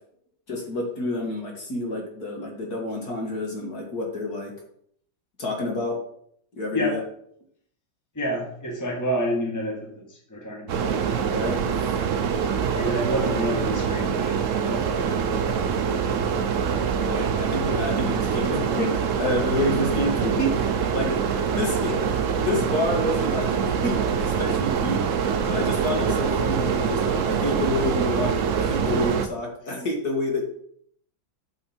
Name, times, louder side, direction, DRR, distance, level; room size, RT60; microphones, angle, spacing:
voice 1, 0.5-4.5 5.4-6.0 6.6-7.0 11.3-11.8 17.0-25.0 25.5-30.4, left 1 dB, 50° left, 0 dB, 2.2 m, -29 dB
voice 2, 8.2-11.3 12.7-15.4, equal, 10° left, 0 dB, 1.6 m, -29 dB
sound 1, 10.7-29.3, right 7 dB, 75° right, 0.7 m, -24 dB
8.7 x 6.4 x 4.5 m, 0.67 s
omnidirectional pair, 2.2 m